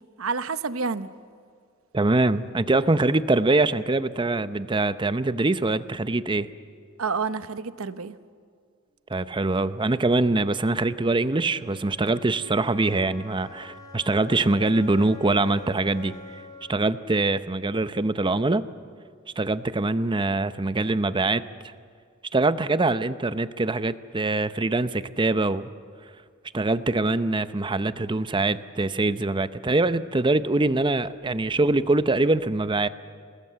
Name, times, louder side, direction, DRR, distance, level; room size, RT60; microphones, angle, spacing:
voice 1, 0.2-1.1 7.0-8.1, right 5 dB, 70° right, 12 dB, 0.9 m, -29 dB
voice 2, 1.9-6.5 9.1-16.1 16.7-18.6 19.4-21.4 22.3-25.7 26.5-32.9, right 2 dB, 25° right, 13 dB, 0.7 m, -23 dB
Wind instrument woodwind instrument, 10.2-18.2, left 6 dB, 20° left, 2.0 m, -46 dB
28.0 x 20.0 x 7.6 m, 2.2 s
head